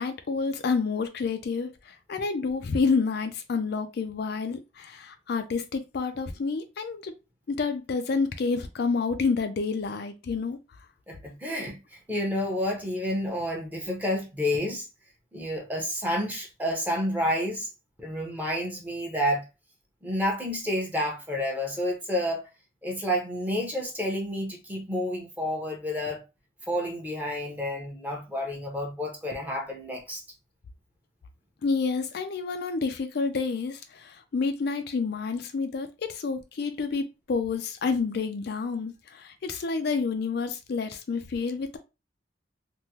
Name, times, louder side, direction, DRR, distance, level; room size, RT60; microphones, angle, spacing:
voice 1, 0.0-7.1 7.5-10.6 31.6-41.8, left 4 dB, 60° left, 0.4 m, -29 dB
voice 2, 11.1-14.9 15.3-17.7 18.0-19.4 20.0-22.4 22.8-26.2 26.7-30.2, equal, 10° right, 0.8 m, -30 dB
3.5 x 2.1 x 2.8 m
head